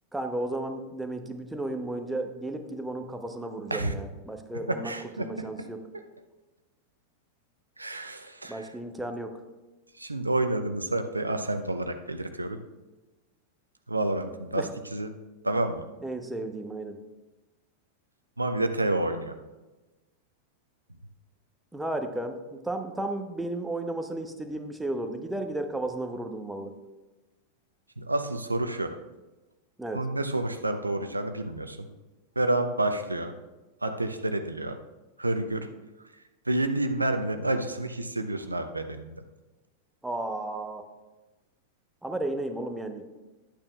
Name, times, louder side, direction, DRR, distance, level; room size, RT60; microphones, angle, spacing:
voice 1, 0.1-4.9 5.2-5.8 8.5-9.3 14.5-14.7 16.0-17.0 21.7-26.7 29.8-30.0 40.0-40.8 42.0-43.1, right 2 dB, 5° right, 6 dB, 0.9 m, -33 dB
voice 2, 4.7-5.7 5.9-6.0 7.8-8.7 9.9-12.6 13.9-15.1 15.4-15.9 18.4-19.4 28.0-29.0 29.9-31.9 32.4-33.3 33.8-34.8 35.2-35.7 36.5-39.2, right 2 dB, 80° right, 8 dB, 0.6 m, -29 dB
11.5 x 8.6 x 2.4 m, 1.1 s
figure-of-eight pair, 90°, 0 cm